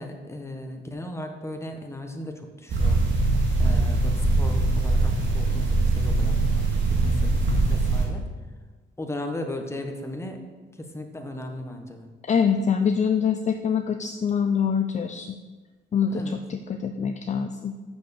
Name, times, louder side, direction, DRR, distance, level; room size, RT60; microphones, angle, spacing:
voice 1, 0.0-3.0 3.6-6.6 7.0-8.2 9.0-10.4 10.8-12.1 16.1-16.4, left 1 dB, 15° left, 4 dB, 1.3 m, -36 dB
sound 1, 2.7-8.1, right 2 dB, 70° right, 2.1 m, -22 dB
voice 2, 12.2-15.4 15.9-17.7, left 6 dB, 35° left, 6 dB, 0.5 m, -25 dB
6.9 x 6.2 x 7.1 m, 1.3 s
cardioid pair, 90°, 20 cm